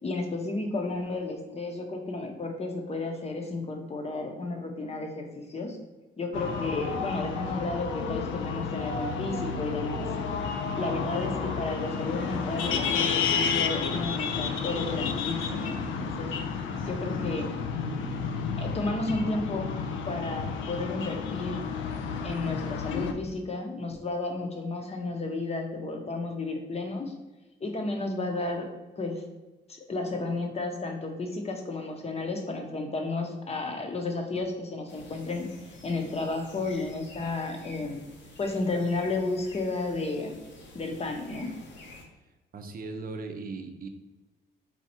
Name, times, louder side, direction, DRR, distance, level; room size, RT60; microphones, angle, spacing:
voice 1, 0.0-5.8 6.2-10.1 10.8-16.3 16.9-17.5 18.6-19.7 20.1-21.6 22.2-27.1 27.6-28.7 29.0-29.2 29.7-35.5 35.8-38.0 38.4-40.3 40.7-41.5, left 2 dB, 30° left, 3 dB, 0.8 m, -32 dB
sound 1, 6.3-23.1, left 5 dB, 80° left, 0.5 m, -31 dB
sound 2, 34.9-42.0, left 2 dB, 65° left, 0.9 m, -49 dB
voice 2, 42.2-43.9, right 3 dB, 45° right, 6 dB, 0.6 m, -39 dB
4.2 x 2.3 x 4.3 m, 1.2 s
cardioid pair, 90°, 20 cm